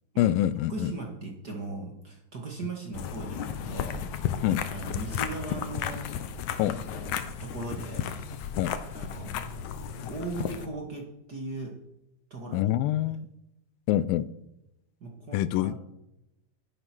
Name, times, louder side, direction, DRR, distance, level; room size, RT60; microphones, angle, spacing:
voice 1, 0.2-0.9 4.4-4.6 6.6-6.8 8.6-8.7 12.5-13.3 13.9-14.3 15.3-15.8, left 13 dB, 90° left, 2.4 m, -25 dB
voice 2, 0.7-4.4 4.7-6.0 6.6-7.1 7.4-8.0 8.9-11.8 12.3-12.7 15.0-15.8, right 3 dB, 35° right, 1.8 m, -38 dB
sound 1, 2.9-10.7, left 8 dB, 70° left, 2.1 m, -34 dB
12.0 x 11.0 x 6.1 m
omnidirectional pair, 4.0 m